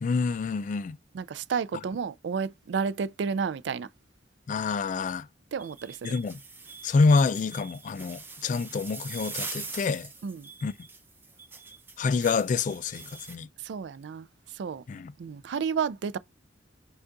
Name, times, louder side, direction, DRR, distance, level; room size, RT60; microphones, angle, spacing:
voice 1, 0.0-1.0 4.5-5.3 6.0-6.4 6.8-10.1 10.6-10.7 12.0-13.5 14.9-15.1, left 4 dB, 45° left, 0.3 m, -27 dB
voice 2, 1.1-3.9 5.5-6.1 10.2-10.5 13.6-14.3 14.5-14.8 15.2-16.2, right 6 dB, 65° right, 0.3 m, -31 dB
sound 1, 5.6-13.4, right 4 dB, 10° right, 0.6 m, -43 dB
5.2 x 2.3 x 3.8 m
head